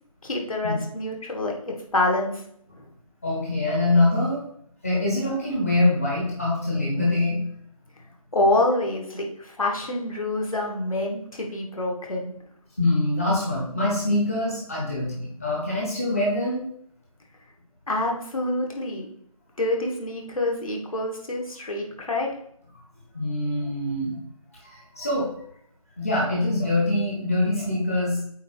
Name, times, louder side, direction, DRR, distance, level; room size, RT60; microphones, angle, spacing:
voice 1, 0.2-2.4 8.3-12.3 17.9-19.1 19.6-22.4, left 2 dB, 65° left, 0 dB, 1.9 m, -26 dB
voice 2, 3.2-4.4 4.8-7.4 12.8-16.6 23.1-24.2 24.6-25.3 26.0-28.2, left 2 dB, 25° left, -4 dB, 1.0 m, -24 dB
8.2 x 2.8 x 4.4 m, 0.69 s
figure-of-eight pair, 175°, 19 cm